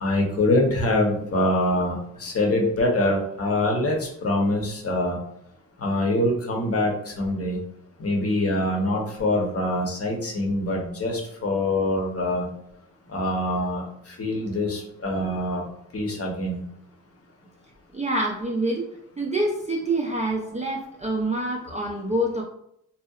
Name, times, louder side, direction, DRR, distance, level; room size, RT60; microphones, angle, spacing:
voice 1, 0.0-5.2 5.8-7.6 8.0-12.5 13.1-13.8 14.2-15.6 15.9-16.6, left 1 dB, 40° left, 0 dB, 0.7 m, -24 dB
voice 2, 17.9-18.8 19.2-22.4, right 1 dB, 20° right, -1 dB, 0.3 m, -26 dB
2.7 x 2.1 x 2.3 m, 0.75 s
cardioid pair, 70°, 37 cm